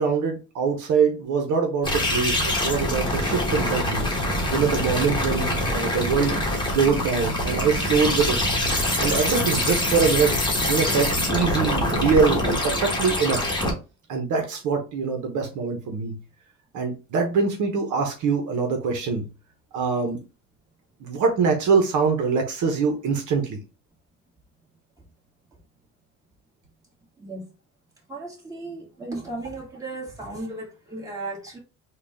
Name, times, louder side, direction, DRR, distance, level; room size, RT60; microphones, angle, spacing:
voice 1, 0.0-4.1 4.5-6.4 6.6-8.4 9.0-10.3 10.7-13.5 14.1-16.2 16.7-19.2 19.7-20.2 21.0-23.6, right 5 dB, 65° right, 0.9 m, -23 dB
sound 1, 1.8-13.7, left 1 dB, 15° left, 1.2 m, -24 dB
voice 2, 28.1-31.6, right 2 dB, 10° right, 1.8 m, -35 dB
3.8 x 2.4 x 3.4 m
cardioid pair, 115°, 33 cm